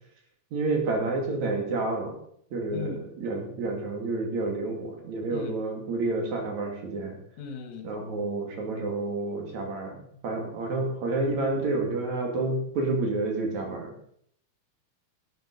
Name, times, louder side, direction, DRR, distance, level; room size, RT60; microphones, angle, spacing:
voice 1, 0.5-2.1 2.5-7.2 7.8-13.9, right 3 dB, 70° right, 1 dB, 3.7 m, -29 dB
voice 2, 2.7-3.0 5.3-5.5 7.4-8.1, left 6 dB, 70° left, 7 dB, 2.6 m, -37 dB
12.5 x 7.9 x 5.3 m, 0.66 s
omnidirectional pair, 3.4 m